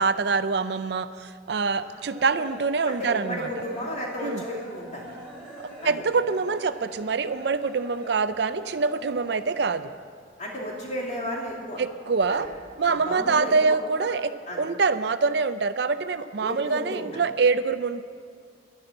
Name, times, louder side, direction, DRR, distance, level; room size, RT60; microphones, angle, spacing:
voice 1, 0.0-3.5 4.2-4.4 5.6-9.9 11.8-12.5 12.8-18.0, right 4 dB, 65° right, 12 dB, 0.5 m, -25 dB
sound 1, 1.3-10.0 10.3-11.5 11.8-13.2 13.5-14.1, equal, 5° right, 3.8 m, -44 dB
voice 2, 2.9-5.0 5.8-6.0 10.4-11.8 12.3-12.4 12.8-13.8 14.5-14.6 16.4-17.1, equal, 35° left, -2 dB, 2.6 m, -33 dB
11.5 x 11.0 x 7.8 m, 2.2 s
head